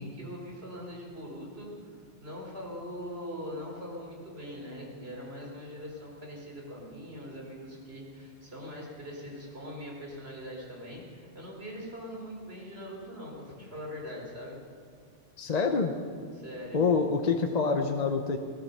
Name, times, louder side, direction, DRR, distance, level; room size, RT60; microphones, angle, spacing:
voice 1, 0.0-14.6 16.3-16.8, equal, 75° right, -1 dB, 3.9 m, -42 dB
voice 2, 15.4-15.9 16.7-18.4, left 5 dB, 45° left, 5 dB, 0.9 m, -26 dB
17.5 x 12.5 x 6.7 m, 2.2 s
omnidirectional pair, 1.1 m